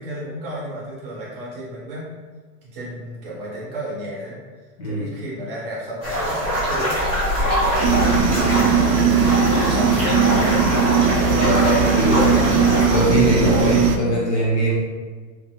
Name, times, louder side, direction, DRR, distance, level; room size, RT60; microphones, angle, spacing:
voice 1, 0.0-2.2 2.6-4.4 4.8-10.2 10.9-12.6, right 1 dB, 35° right, -5 dB, 0.8 m, -33 dB
voice 2, 4.8-5.1 11.4-12.5 12.9-14.8, equal, 45° left, -5 dB, 0.7 m, -21 dB
sound 1, 6.0-13.0, equal, 25° left, 1.0 m, -23 dB
sound 2, 7.8-14.0, right 6 dB, 70° right, 0.5 m, -18 dB
2.6 x 2.5 x 2.7 m, 1.4 s
supercardioid pair, 175°, 50 cm